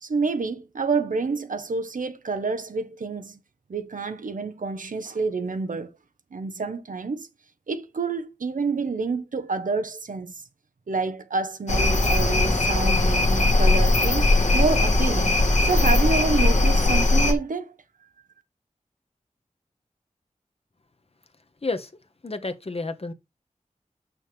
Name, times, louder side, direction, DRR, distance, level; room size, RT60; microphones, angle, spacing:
voice 1, 0.0-3.4 3.7-5.9 6.3-7.3 7.7-10.3 10.9-17.7, right 4 dB, 80° right, 0.9 m, -28 dB
sound 1, 11.7-17.3, left 2 dB, 65° left, 1.7 m, -20 dB
voice 2, 22.2-23.1, left 3 dB, 45° left, 1.1 m, -30 dB
6.4 x 6.3 x 3.4 m
wide cardioid pair, 45°, 13 cm